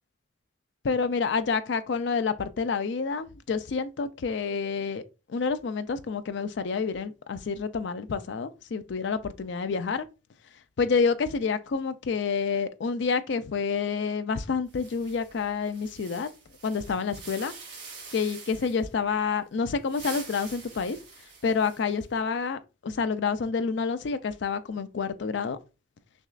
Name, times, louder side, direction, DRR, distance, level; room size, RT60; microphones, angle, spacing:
voice 1, 0.8-5.0 5.3-10.1 10.8-16.3 16.6-17.5 18.1-21.0 21.4-25.6, left 5 dB, 65° left, 0.4 m, -28 dB
sound 1, 14.7-18.9 19.7-22.0, right 5 dB, 60° right, 2.1 m, -45 dB
6.1 x 2.4 x 2.4 m
head